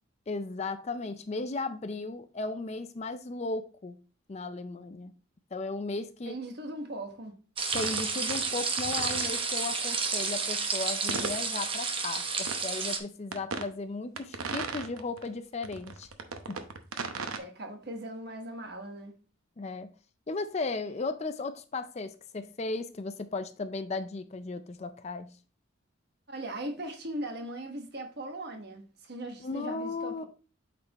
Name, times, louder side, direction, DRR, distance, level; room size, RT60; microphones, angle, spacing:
voice 1, 0.3-4.0 4.3-5.1 5.5-6.4 7.7-16.1 16.5-16.6 19.6-19.9 20.3-25.3 29.4-30.2, left 3 dB, 30° left, 0.4 m, -36 dB
voice 2, 6.2-7.4 17.4-19.2 26.3-30.3, right 1 dB, 50° right, 1.3 m, -39 dB
sound 1, 7.6-13.0, right 4 dB, 25° right, 0.8 m, -31 dB
sound 2, 7.7-8.5 8.8-9.3 11.1-11.4 12.5-12.6 13.3-13.7 14.2-15.3 15.6-17.4, right 4 dB, 90° right, 0.8 m, -36 dB
8.5 x 4.3 x 2.9 m
head